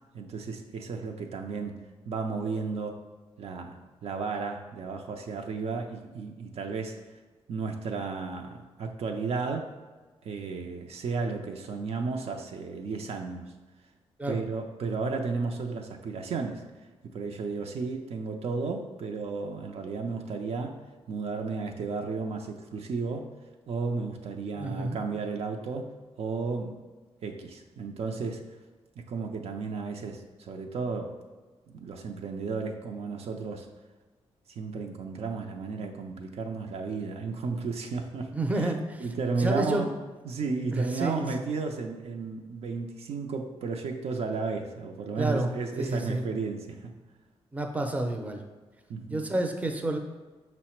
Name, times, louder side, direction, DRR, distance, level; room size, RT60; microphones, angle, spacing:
voice 1, 0.1-1.8 2.1-3.0 3.4-7.0 7.5-9.8 10.2-13.5 14.3-16.6 17.0-20.8 21.1-23.3 23.7-25.9 26.2-26.8 27.2-28.4 29.0-31.2 31.7-33.7 34.5-38.7 39.0-39.9 40.2-47.0 48.9-49.3, right 4 dB, 65° right, 3 dB, 0.5 m, -33 dB
voice 2, 24.6-25.0 38.3-39.1 39.4-39.8 40.7-41.4 45.2-45.5 45.8-46.2 47.5-48.4 49.1-50.0, right 2 dB, 15° right, 4 dB, 0.5 m, -29 dB
5.5 x 2.1 x 4.3 m, 1.3 s
cardioid pair, 85°, 11 cm